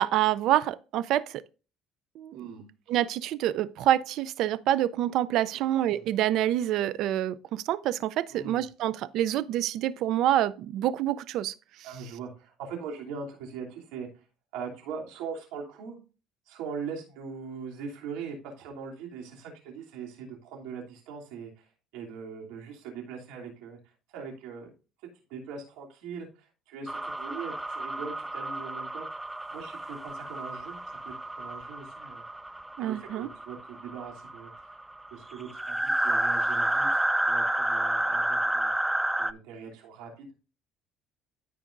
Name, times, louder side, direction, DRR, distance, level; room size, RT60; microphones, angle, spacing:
voice 1, 0.0-1.4 2.2-2.5 2.9-11.5 32.8-33.3, right 12 dB, 65° right, 0.5 m, -27 dB
voice 2, 2.3-2.7 5.5-6.1 8.3-8.7 11.8-14.2 14.5-16.0 16.5-23.8 24.1-24.7 25.3-29.1 29.5-30.8 31.0-32.2 32.8-34.8 35.1-38.7 39.2-40.3, right 5 dB, 85° right, 2.9 m, -41 dB
sound 1, 26.9-39.3, right 1 dB, 5° right, 0.4 m, -30 dB
14.0 x 4.9 x 2.6 m
cardioid pair, 115°, 0 cm